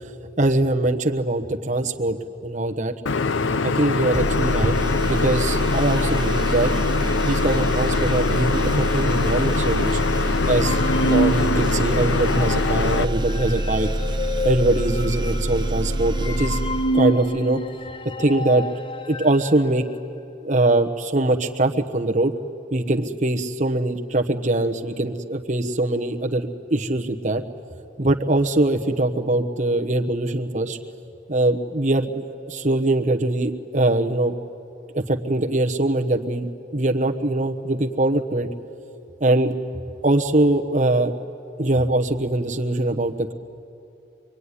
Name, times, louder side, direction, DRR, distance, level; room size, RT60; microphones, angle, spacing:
voice 1, 0.4-2.2 2.4-2.9 3.6-4.7 5.1-6.7 7.2-10.0 10.5-13.9 14.4-16.7 16.9-17.6 18.2-18.7 19.1-19.9 20.4-22.3 22.7-27.4 28.0-30.8 31.3-34.3 34.9-38.5 39.2-39.6 40.0-41.1 41.6-43.3, right 2 dB, 40° right, 4 dB, 1.1 m, -22 dB
sound 1, 3.1-13.1, left 4 dB, 80° left, 0.7 m, -23 dB
sound 2, 4.1-17.5, right 1 dB, 20° right, 0.6 m, -26 dB
sound 3, 10.6-19.6, right 1 dB, 25° left, 0.8 m, -28 dB
25.5 x 22.5 x 9.9 m, 2.7 s
head